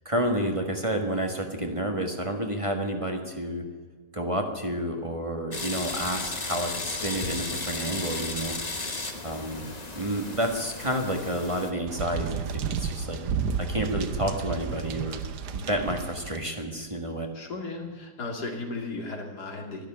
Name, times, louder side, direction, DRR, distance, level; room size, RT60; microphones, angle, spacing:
voice 1, 0.1-3.6 4.1-8.6 9.2-9.7 10.0-13.2 13.6-15.2 15.5-17.3, right 1 dB, 20° right, 3 dB, 1.6 m, -30 dB
sound 1, 5.5-11.7, left 3 dB, 25° left, 1.4 m, -34 dB
sound 2, 11.9-16.4, right 6 dB, 90° right, 1.5 m, -32 dB
voice 2, 17.3-19.9, left 3 dB, 85° left, 1 dB, 3.1 m, -35 dB
12.0 x 12.0 x 8.8 m, 1.5 s
omnidirectional pair, 1.7 m